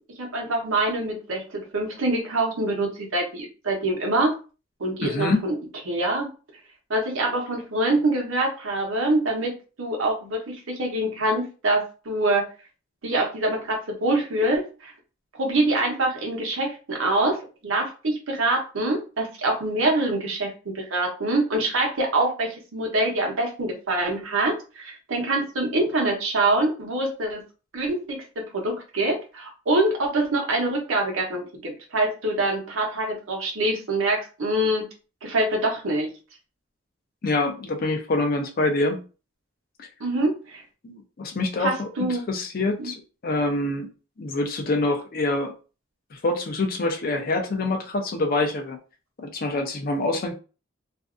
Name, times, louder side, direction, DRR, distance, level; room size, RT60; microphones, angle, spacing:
voice 1, 0.2-4.3 4.8-5.5 5.9-6.3 6.9-9.5 9.8-12.5 13.0-14.9 15.3-27.4 27.7-34.8 35.2-36.1 40.0-40.6 41.6-42.2 42.8-42.9, right 2 dB, 85° right, 0.8 m, -25 dB
voice 2, 5.0-5.4 37.2-39.0 39.8-39.9 40.8-43.9 44.2-45.5 46.1-48.8 49.2-50.3, left 2 dB, 45° left, 0.5 m, -26 dB
2.5 x 2.2 x 2.4 m
head